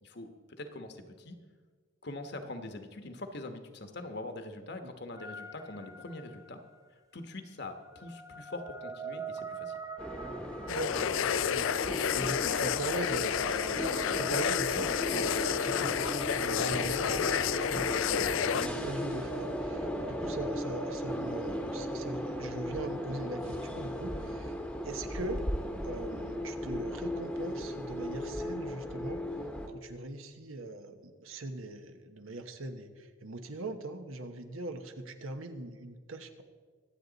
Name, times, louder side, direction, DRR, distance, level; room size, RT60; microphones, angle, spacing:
voice 1, 0.0-1.4 2.0-6.6 7.1-9.7, left 2 dB, 55° left, 6 dB, 1.2 m, -43 dB
sound 1, 5.2-6.8 7.7-18.8, right 4 dB, 15° right, 0.8 m, -46 dB
sound 2, 10.0-29.7, equal, 5° left, 1.0 m, -37 dB
sound 3, 10.7-18.7, left 8 dB, 70° left, 0.4 m, -30 dB
voice 2, 10.7-11.2 11.4-13.7 14.1-24.5 24.8-25.5 25.8-29.2 29.7-36.4, right 2 dB, 80° right, 7 dB, 1.1 m, -41 dB
24.0 x 8.3 x 4.0 m, 1.5 s
head